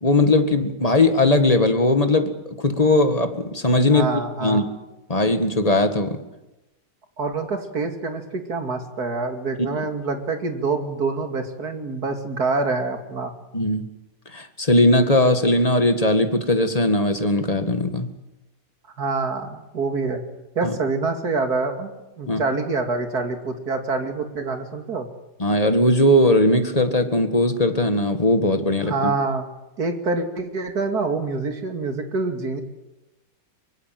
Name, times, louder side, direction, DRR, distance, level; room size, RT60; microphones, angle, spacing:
voice 1, 0.0-4.6 5.1-6.2 13.5-13.9 14.3-18.1 20.6-20.7 22.3-22.4 25.4-29.1, left 1 dB, 20° left, 7 dB, 2.0 m, -19 dB
voice 2, 3.9-4.6 7.2-13.3 19.0-20.2 20.5-21.9 22.2-25.1 28.8-29.5 29.8-32.6, right 3 dB, 55° right, 5 dB, 3.1 m, -26 dB
24.0 x 24.0 x 7.8 m, 0.98 s
omnidirectional pair, 2.0 m